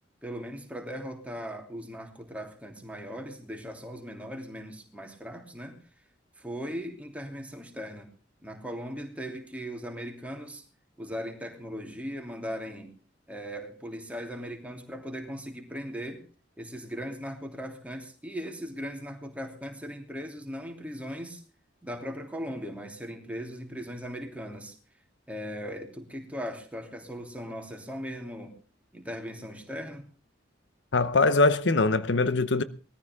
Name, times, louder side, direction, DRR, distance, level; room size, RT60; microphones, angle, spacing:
voice 1, 0.2-5.8 6.4-8.1 8.4-10.6 11.0-12.9 13.3-16.2 16.6-21.4 21.8-24.8 25.3-28.6 28.9-30.1, equal, 5° right, 2.8 m, -38 dB
voice 2, 30.9-32.6, left 3 dB, 70° left, 0.8 m, -22 dB
20.5 x 14.5 x 3.6 m
head